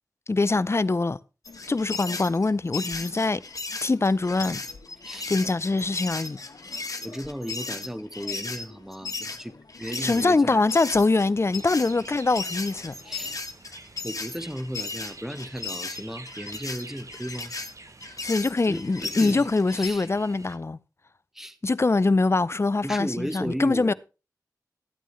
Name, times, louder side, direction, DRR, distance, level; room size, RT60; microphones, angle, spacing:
voice 1, 0.3-1.2 1.7-3.4 3.8-4.6 5.3-6.4 10.0-13.0 18.2-20.8 21.6-23.9, left 3 dB, 40° left, 0.5 m, -23 dB
sound 1, 1.4-13.4, left 4 dB, 90° left, 1.2 m, -51 dB
sound 2, 1.4-10.2 10.7-19.9, left 3 dB, 55° left, 1.6 m, -36 dB
voice 2, 7.0-10.6 13.0-13.4 14.0-17.5 18.7-20.1 21.3-21.6 22.8-23.9, equal, 5° right, 1.2 m, -35 dB
sound 3, 11.4-20.6, right 3 dB, 50° right, 0.9 m, -47 dB
13.5 x 9.2 x 3.1 m
cardioid pair, 40°, 7 cm